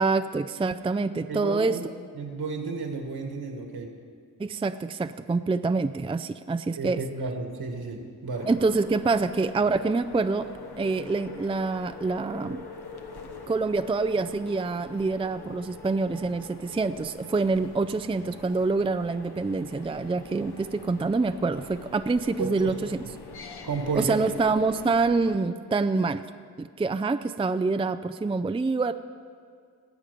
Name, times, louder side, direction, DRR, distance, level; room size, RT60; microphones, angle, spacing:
voice 1, 0.0-1.8 4.4-7.0 8.5-10.5 10.8-12.6 13.5-23.0 24.0-26.2 26.6-28.9, right 3 dB, 15° right, 10 dB, 0.4 m, -26 dB
voice 2, 1.3-1.9 2.1-3.9 6.8-8.5 22.4-23.0 23.6-24.2, right 4 dB, 70° right, 3 dB, 2.0 m, -32 dB
sound 1, 8.3-25.4, left 4 dB, 70° left, 1.2 m, -44 dB
19.0 x 7.2 x 5.3 m, 2.2 s
cardioid pair, 45°, 40 cm